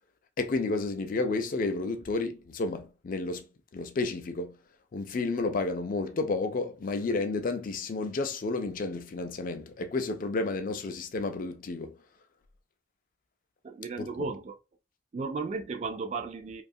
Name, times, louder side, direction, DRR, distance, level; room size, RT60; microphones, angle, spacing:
voice 1, 0.4-3.4 3.7-4.6 4.9-11.9 14.0-14.3, left 3 dB, 45° left, 0.4 m, -31 dB
voice 2, 13.6-14.6 15.1-16.6, right 4 dB, 35° right, 0.3 m, -34 dB
2.7 x 2.3 x 2.6 m
head